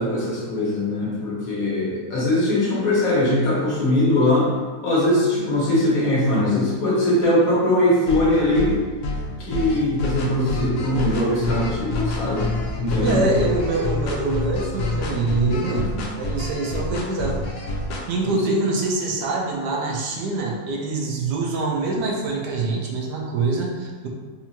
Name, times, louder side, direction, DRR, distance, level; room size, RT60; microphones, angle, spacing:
voice 1, 0.0-4.5 4.8-8.7 9.4-12.5 12.8-13.2 15.5-16.0 18.2-18.3, left 1 dB, 60° left, -7 dB, 1.5 m, -21 dB
sound 1, 8.1-18.0, left 2 dB, 85° left, 1.3 m, -27 dB
voice 2, 13.0-17.4 18.1-24.1, right 3 dB, 80° right, -1 dB, 1.2 m, -24 dB
4.3 x 2.4 x 2.8 m, 1.4 s
omnidirectional pair, 1.7 m